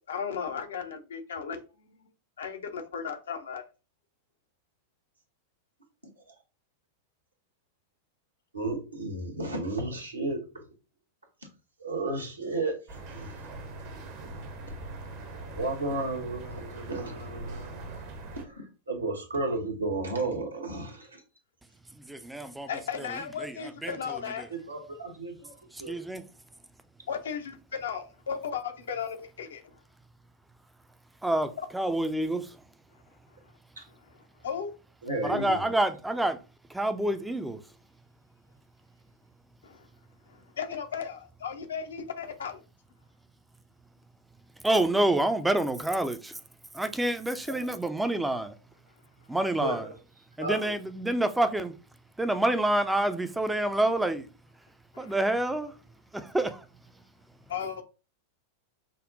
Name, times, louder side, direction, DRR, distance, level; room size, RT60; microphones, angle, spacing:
voice 1, 0.1-1.6 2.0-2.1 2.4-3.6 22.7-24.5 27.1-29.8 31.6-31.7 33.9-34.7 39.6-39.9 40.3-42.6 54.9-55.2 57.5-57.8, left 7 dB, 65° left, 0.6 m, -36 dB
voice 2, 8.5-10.4 11.8-12.7 13.1-13.3 15.5-18.0 18.4-21.2 24.7-25.5 25.8-26.0 33.8-33.9 35.0-35.6 47.6-47.7 49.6-49.9 50.4-50.7, right 2 dB, 80° right, 0.9 m, -33 dB
sound 1, 12.9-18.4, right 2 dB, 45° right, 0.7 m, -41 dB
voice 3, 22.1-22.7 23.4-23.5 23.8-23.9 25.9-26.2 31.2-32.5 35.2-36.4 36.7-37.6 44.6-46.3 46.7-48.5 49.3-49.9 50.4-51.7 52.2-54.3 55.0-55.7 56.1-56.6, right 1 dB, 5° right, 0.4 m, -27 dB
5.2 x 2.1 x 2.6 m
figure-of-eight pair, 90°, 0 cm